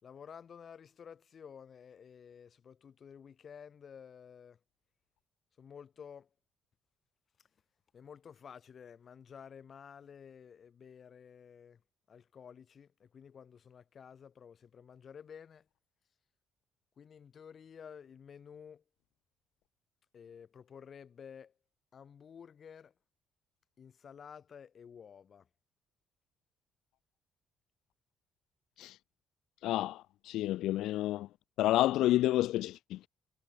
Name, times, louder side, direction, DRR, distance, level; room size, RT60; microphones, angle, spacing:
voice 1, 0.0-4.6 5.6-6.3 7.9-11.8 12.1-15.7 17.0-18.8 20.1-21.5 21.9-22.9 23.8-25.5, left 7 dB, 35° left, 2.9 m, -52 dB
voice 2, 29.6-31.3 31.6-33.1, left 15 dB, 85° left, 0.4 m, -30 dB
cardioid pair, 155°, 0 cm